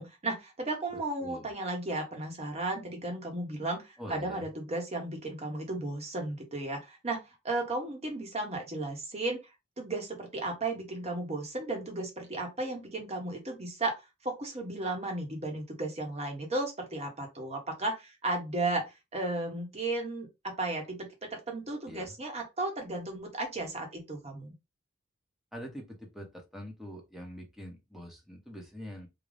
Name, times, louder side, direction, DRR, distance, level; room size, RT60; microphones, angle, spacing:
voice 1, 0.0-9.4 9.8-24.5, right 2 dB, 35° right, 2 dB, 1.1 m, -34 dB
voice 2, 4.0-4.5 21.9-22.1 25.5-29.1, equal, ahead, 1 dB, 1.0 m, -44 dB
3.8 x 2.3 x 3.3 m, 0.24 s
head